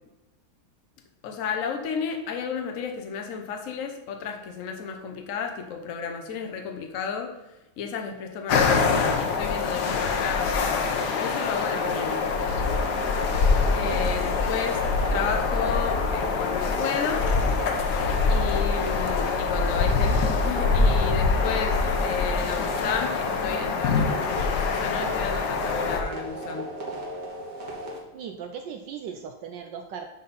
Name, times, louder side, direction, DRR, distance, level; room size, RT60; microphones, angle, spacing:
voice 1, 1.2-7.3 7.8-12.2 13.7-14.8 15.1-17.3 18.3-26.7, left 6 dB, 80° left, 3 dB, 0.7 m, -32 dB
sound 1, 8.5-26.0, left 4 dB, 65° left, 1.2 m, -24 dB
sound 2, 11.5-28.0, right 1 dB, 55° right, 2.0 m, -36 dB
voice 2, 28.1-30.1, right 7 dB, 75° right, 5 dB, 1.0 m, -37 dB
11.0 x 3.8 x 4.0 m, 0.99 s
omnidirectional pair, 2.4 m